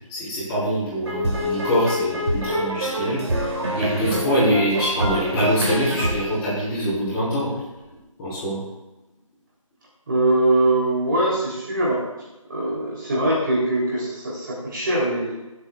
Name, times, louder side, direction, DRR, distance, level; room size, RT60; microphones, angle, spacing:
voice 1, 0.1-7.5 8.2-8.6, equal, 10° left, -11 dB, 4.4 m, -24 dB
sound 1, 1.0-7.4, equal, 55° right, 3.9 m, -26 dB
voice 2, 10.1-12.0 12.5-15.3, right 1 dB, 35° right, -5 dB, 3.2 m, -22 dB
21.0 x 8.2 x 2.4 m, 1.0 s
figure-of-eight pair, 170°, 18 cm